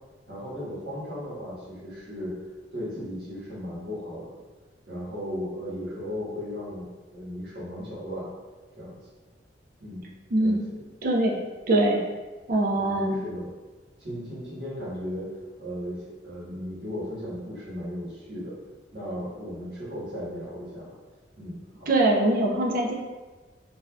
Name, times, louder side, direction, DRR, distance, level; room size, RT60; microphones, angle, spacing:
voice 1, 0.3-2.3 2.7-4.4 4.9-8.3 8.8-8.9 9.8-10.0 10.4-10.6 12.7-13.5 14.0-15.3 15.6-18.5 18.9-20.9 21.4-21.9, equal, 70° right, -9 dB, 1.3 m, -36 dB
voice 2, 11.0-11.4 11.7-12.0 12.5-13.2 21.9-22.9, right 1 dB, 50° right, 0 dB, 0.4 m, -22 dB
3.2 x 2.4 x 2.3 m, 1.2 s
head